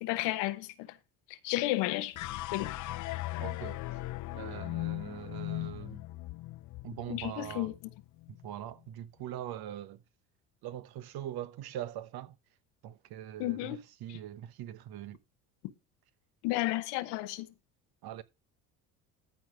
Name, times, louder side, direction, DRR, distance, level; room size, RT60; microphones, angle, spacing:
voice 1, 0.0-1.0 1.3-2.2 2.5-2.7 7.1-7.7 13.4-13.8 14.1-14.2 16.4-17.5, left 17 dB, 70° left, 1.1 m, -32 dB
sound 1, 2.1-8.5, left 17 dB, 45° left, 0.5 m, -39 dB
voice 2, 3.4-3.8 4.3-6.0 6.8-7.7 8.3-10.0 10.6-12.4 12.8-15.2 18.0-18.2, right 11 dB, 60° right, 1.1 m, -42 dB
13.5 x 4.5 x 4.9 m
hypercardioid pair, 75°, 43 cm